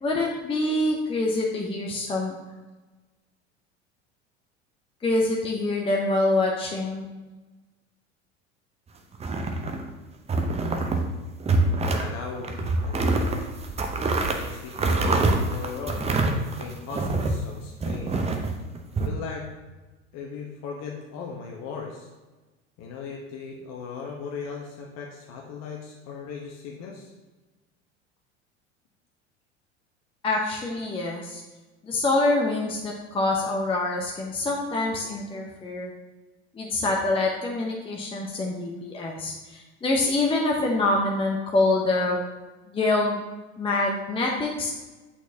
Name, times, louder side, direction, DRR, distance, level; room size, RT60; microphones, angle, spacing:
voice 1, 0.0-2.3 5.0-7.1 30.2-31.4 31.8-35.9 36.6-42.2 42.7-43.2 43.6-44.8, left 2 dB, 15° left, -1 dB, 0.8 m, -25 dB
sound 1, 9.1-9.9 10.3-11.1 11.4-12.1 12.4-17.4 17.8-19.1, right 2 dB, 20° right, 0.7 m, -25 dB
voice 2, 11.9-13.3 14.2-16.3 16.6-18.2 19.0-19.5 20.1-22.1 22.8-27.1, left 5 dB, 45° left, -1 dB, 1.0 m, -38 dB
8.1 x 4.3 x 2.8 m, 1.2 s
figure-of-eight pair, 75°, 36 cm